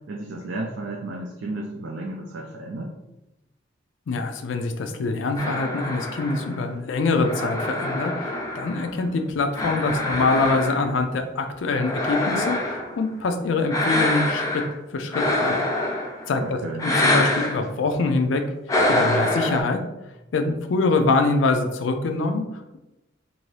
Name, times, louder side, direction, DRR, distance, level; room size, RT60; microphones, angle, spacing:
voice 1, 0.1-2.9 16.3-17.0, right 2 dB, 75° right, -1 dB, 0.4 m, -33 dB
voice 2, 4.1-14.6 14.9-15.6 16.3-18.4 18.9-19.8 20.3-22.4, left 3 dB, 85° left, 6 dB, 0.4 m, -24 dB
sound 1, 5.4-9.1 9.5-11.0 11.6-13.0 13.7-14.7 15.1-16.3 16.8-17.6 18.7-19.6, left 1 dB, 20° left, 0.5 m, -25 dB
2.6 x 2.6 x 3.2 m, 0.96 s
head